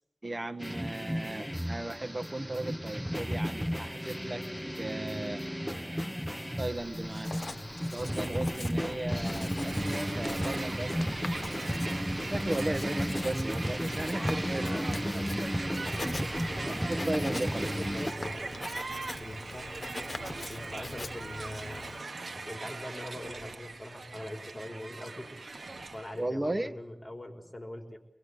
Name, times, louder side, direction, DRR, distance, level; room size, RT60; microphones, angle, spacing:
voice 1, 0.2-4.5 4.7-5.5 6.6-7.3 7.9-11.6 12.3-14.9 16.1-16.3 16.8-17.7 26.1-26.7, right 2 dB, 30° right, 8 dB, 1.6 m, -36 dB
sound 1, 0.6-18.1, equal, ahead, 1.2 m, -34 dB
Writing, 6.7-22.1, left 2 dB, 45° left, 1.6 m, -43 dB
Crowd, 9.6-26.3, right 3 dB, 75° right, 1.3 m, -41 dB
voice 2, 9.8-10.3 14.1-15.3 16.4-16.7 17.5-18.6 19.2-19.8 20.5-28.0, left 1 dB, 20° left, 2 dB, 4.8 m, -43 dB
24.5 x 22.5 x 8.3 m, 0.85 s
wide cardioid pair, 75°, 0 cm